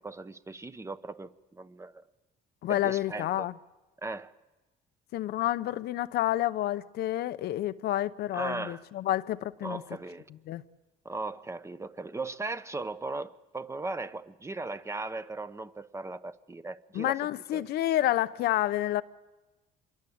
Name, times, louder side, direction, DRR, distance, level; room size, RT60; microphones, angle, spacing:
voice 1, 0.0-2.0 2.7-3.5 4.0-4.3 8.3-8.8 9.6-10.3 11.0-17.2 17.5-17.6, right 3 dB, 15° right, 1.0 m, -38 dB
voice 2, 2.6-3.5 5.1-9.8 10.3-10.6 16.9-19.0, left 14 dB, 75° left, 0.8 m, -29 dB
26.0 x 22.5 x 8.7 m
cardioid pair, 110°, 17 cm